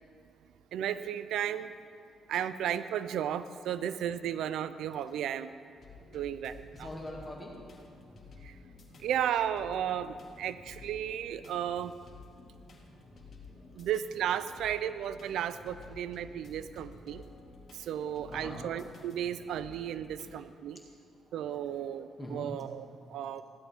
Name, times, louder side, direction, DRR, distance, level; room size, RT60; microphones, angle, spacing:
voice 1, 0.7-1.7 2.3-5.5 6.1-6.9 8.4-8.5 9.0-11.9 13.8-17.2 17.7-20.8 21.3-23.4, right 10 dB, 80° right, 13 dB, 0.4 m, -34 dB
sound 1, 5.8-20.3, left 3 dB, 55° left, 2.1 m, -53 dB
voice 2, 6.7-7.6 10.1-10.2 12.9-13.1 13.4-13.8 14.6-14.7 15.8-15.9 16.2-16.3 16.6-16.7 17.1-17.3 18.1-18.6 19.5-19.6 20.1-20.2 21.3-22.5 23.3-23.4, equal, 15° left, -3 dB, 2.1 m, -46 dB
16.0 x 11.5 x 3.5 m, 2.4 s
cardioid pair, 90°, 0 cm